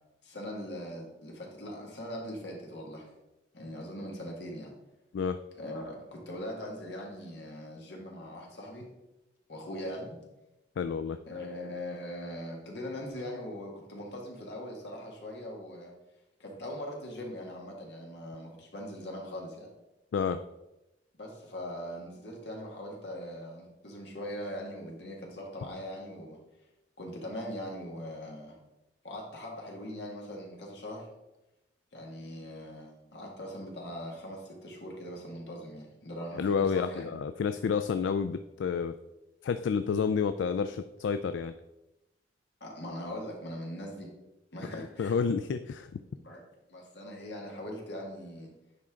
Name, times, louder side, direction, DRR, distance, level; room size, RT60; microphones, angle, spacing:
voice 1, 0.2-3.1 3.5-4.7 5.6-8.9 9.5-10.2 11.3-15.9 16.4-19.7 21.2-26.4 27.0-28.6 29.0-31.1 31.9-37.1 42.6-44.1 44.5-45.1 46.2-46.4 46.7-48.5, equal, 70° left, -1 dB, 2.0 m, -41 dB
voice 2, 10.8-11.2 20.1-20.4 36.4-38.9 39.4-41.5 44.7-45.9, left 6 dB, 90° left, 9 dB, 0.3 m, -29 dB
10.0 x 4.4 x 3.7 m, 0.95 s
head